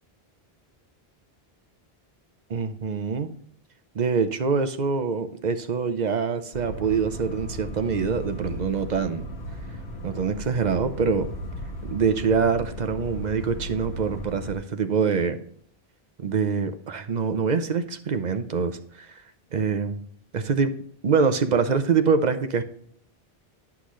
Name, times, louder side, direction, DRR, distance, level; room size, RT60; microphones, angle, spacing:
voice 1, 2.5-3.3 3.9-9.3 10.0-11.3 11.9-15.4 16.2-19.1 19.5-20.0 20.3-20.7 21.0-22.6, right 5 dB, 50° right, 9 dB, 0.7 m, -25 dB
sound 1, 6.5-14.5, left 1 dB, 85° left, 1.5 m, -36 dB
10.0 x 5.9 x 3.1 m, 0.63 s
omnidirectional pair, 1.0 m